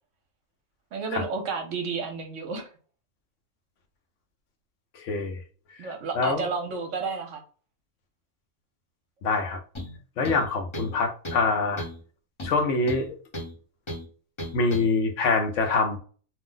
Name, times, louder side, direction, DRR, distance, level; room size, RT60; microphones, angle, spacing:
voice 1, 0.9-2.7 5.8-7.4, right 4 dB, 65° right, 0.9 m, -31 dB
voice 2, 5.0-5.4 6.2-6.4 9.2-9.6 10.2-11.8 12.4-13.2 14.5-16.0, left 3 dB, 65° left, 0.9 m, -25 dB
sound 1, 9.7-10.0 10.2-11.0 11.2-11.5 11.8-12.0 12.4-13.5 13.9-14.0 14.4-14.9, left 1 dB, 25° left, 0.7 m, -35 dB
2.6 x 2.0 x 3.7 m
omnidirectional pair, 1.5 m